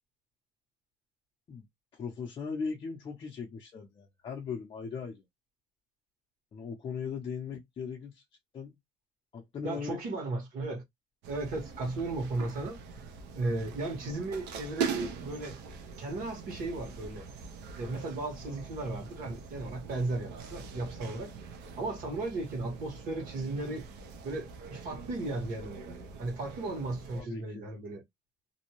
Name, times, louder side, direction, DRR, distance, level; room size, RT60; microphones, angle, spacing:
voice 1, 1.9-5.2 6.5-8.2 8.5-8.7 9.3-10.0 27.2-27.7, left 5 dB, 30° left, 0.5 m, -38 dB
voice 2, 9.6-10.8 11.3-15.6 16.0-17.3 17.8-21.3 21.8-23.8 24.2-28.0, right 2 dB, 55° right, 1.3 m, -35 dB
sound 1, 11.2-27.2, right 6 dB, 80° right, 0.6 m, -42 dB
2.6 x 2.1 x 2.9 m
cardioid pair, 170°, 18 cm